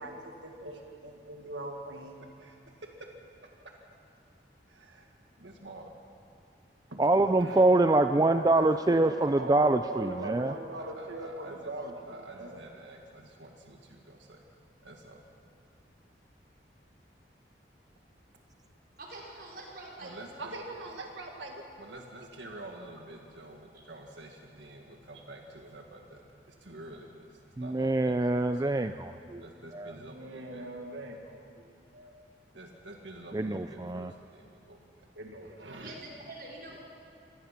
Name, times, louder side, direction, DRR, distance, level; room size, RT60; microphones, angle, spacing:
voice 1, 0.0-2.5 4.7-5.1 5.4-5.9 7.4-7.7 8.5-14.4 14.8-15.2 20.0-26.2 26.6-27.3 27.6-28.7 29.4-31.7 31.9-32.1 32.5-34.8 35.1-35.9, right 1 dB, 90° right, 2 dB, 1.9 m, -44 dB
voice 2, 7.0-10.5 27.6-29.4 29.7-29.9 33.3-34.1, right 2 dB, 20° right, 9 dB, 0.4 m, -25 dB
voice 3, 19.0-20.2 35.8-36.8, right 2 dB, 55° right, -3 dB, 4.9 m, -45 dB
26.0 x 18.5 x 5.9 m, 2.6 s
head